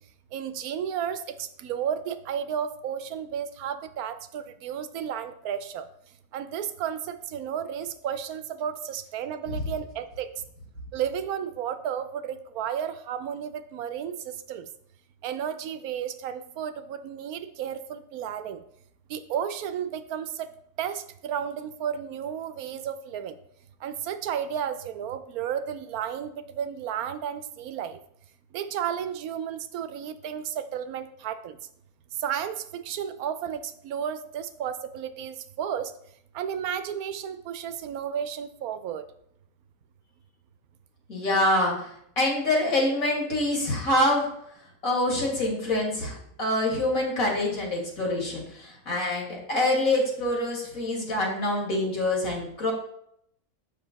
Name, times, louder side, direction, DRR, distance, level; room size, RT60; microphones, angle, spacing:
voice 1, 0.3-5.9 6.3-10.3 10.9-14.2 14.5-14.7 15.2-18.6 19.1-20.5 20.8-23.3 23.8-28.0 28.5-31.6 32.2-35.9 36.3-39.1, right 8 dB, 85° right, 11 dB, 1.1 m, -33 dB
voice 2, 41.1-44.3 44.8-52.7, left 1 dB, 70° left, -2 dB, 2.6 m, -26 dB
7.6 x 5.8 x 4.0 m, 0.72 s
omnidirectional pair, 1.5 m